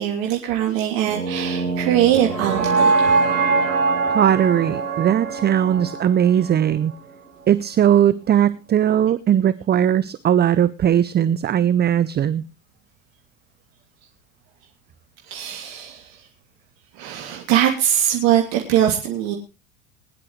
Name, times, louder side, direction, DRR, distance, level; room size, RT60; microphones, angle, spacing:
voice 1, 0.0-3.1 15.2-16.3 16.9-19.4, right 11 dB, 65° right, 1 dB, 3.1 m, -21 dB
sound 1, 1.1-7.2, right 4 dB, 80° right, 4.3 m, -23 dB
voice 2, 4.1-6.9 7.5-12.4, right 10 dB, 25° right, 16 dB, 0.6 m, -19 dB
21.5 x 10.5 x 3.2 m, 0.28 s
hypercardioid pair, 90°, 39 cm